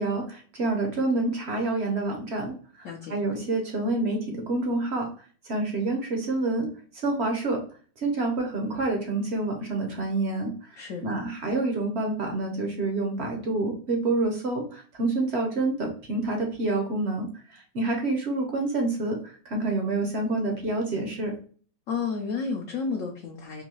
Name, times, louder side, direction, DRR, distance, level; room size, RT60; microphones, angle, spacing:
voice 1, 0.0-6.7 6.9-7.6 8.0-21.3, right 2 dB, 55° right, 2 dB, 0.7 m, -28 dB
voice 2, 2.8-3.2 10.8-11.1 21.9-23.6, left 5 dB, 70° left, 2 dB, 0.8 m, -31 dB
3.8 x 2.6 x 2.9 m, 0.43 s
omnidirectional pair, 1.9 m